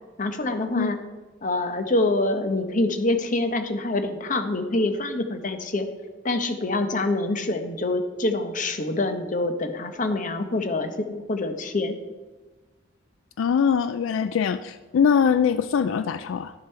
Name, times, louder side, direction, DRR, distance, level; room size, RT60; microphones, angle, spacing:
voice 1, 0.2-1.0 1.4-5.9 6.2-12.0, left 2 dB, 40° left, 7 dB, 0.9 m, -26 dB
voice 2, 13.4-16.5, left 7 dB, 75° left, 13 dB, 0.3 m, -22 dB
11.5 x 6.7 x 4.4 m, 1.3 s
head